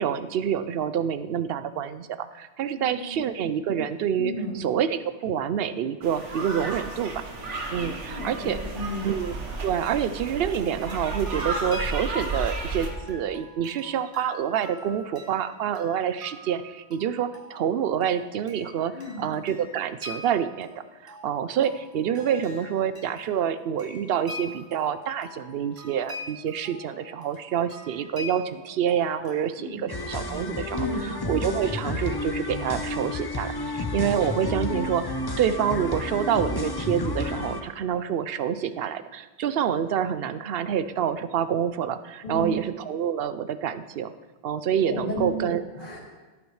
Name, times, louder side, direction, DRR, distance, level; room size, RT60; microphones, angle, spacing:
voice 1, 0.0-7.2 7.7-8.6 9.0-9.3 9.6-20.7 21.0-30.9 31.3-44.1 44.4-45.6, right 8 dB, 65° right, 12 dB, 0.7 m, -27 dB
voice 2, 2.7-3.2 4.2-4.6 7.8-9.1 18.9-19.2 29.5-29.8 30.7-31.1 42.2-42.5 44.8-45.5 45.7-46.0, equal, 45° left, -3 dB, 2.8 m, -33 dB
sound 1, 6.0-12.9, right 3 dB, 90° right, 1.6 m, -33 dB
sound 2, 10.3-29.3, left 2 dB, 20° right, 2.6 m, -44 dB
sound 3, 29.9-37.6, left 2 dB, 25° left, 0.6 m, -31 dB
17.5 x 8.5 x 3.2 m, 1.3 s
omnidirectional pair, 1.2 m